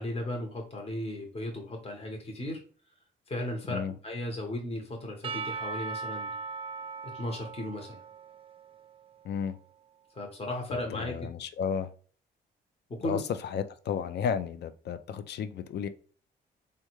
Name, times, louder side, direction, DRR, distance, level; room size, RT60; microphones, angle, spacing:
voice 1, 0.0-2.6 3.3-6.3 7.0-8.0 10.1-11.1 12.9-13.2, left 1 dB, 30° left, 1 dB, 1.0 m, -35 dB
Percussion / Church bell, 5.2-9.6, right 4 dB, 30° right, 0.4 m, -39 dB
voice 2, 9.2-9.6 10.7-11.9 13.0-15.9, left 7 dB, 60° left, 11 dB, 0.4 m, -33 dB
3.5 x 2.2 x 3.0 m, 0.42 s
supercardioid pair, 60°, 20 cm